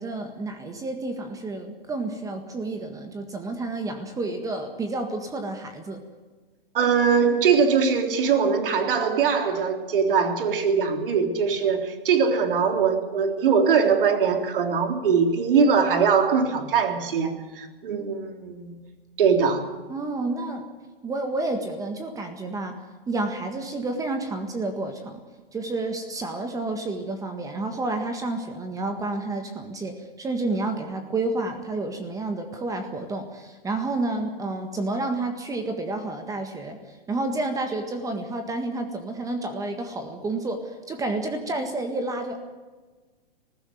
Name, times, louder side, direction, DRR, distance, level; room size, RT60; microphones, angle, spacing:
voice 1, 0.0-6.0 19.9-20.7 21.0-22.8 23.1-25.2 25.5-42.4, right 2 dB, 10° right, 6 dB, 1.7 m, -30 dB
voice 2, 6.7-18.7 19.2-19.7, right 6 dB, 60° right, 5 dB, 3.6 m, -22 dB
19.5 x 15.5 x 9.3 m, 1.3 s
hypercardioid pair, 140°, 30 cm